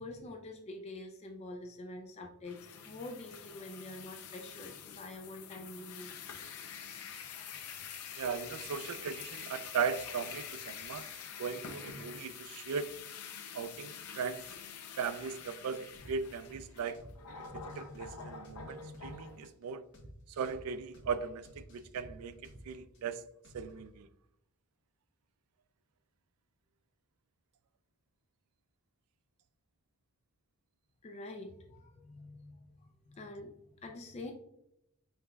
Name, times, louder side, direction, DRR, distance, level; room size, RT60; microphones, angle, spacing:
voice 1, 0.0-6.2 6.9-7.1 7.5-7.8 31.0-33.5 33.8-34.3, left 2 dB, 30° left, 0.3 m, -46 dB
sound 1, 2.4-19.5, left 7 dB, 85° left, 0.6 m, -46 dB
voice 2, 8.2-11.1 11.4-12.9 13.5-14.5 15.0-17.0 17.5-19.8 20.3-23.2 23.5-24.1, right 6 dB, 80° right, 0.3 m, -38 dB
sound 2, 15.9-16.1 16.4-16.6 16.9-17.1 17.4-19.1 19.4-19.5 19.9-20.1 20.4-20.6 20.9-21.1 21.4-23.0 23.4-23.9, equal, 55° left, 1.3 m, -53 dB
5.5 x 3.4 x 2.2 m
head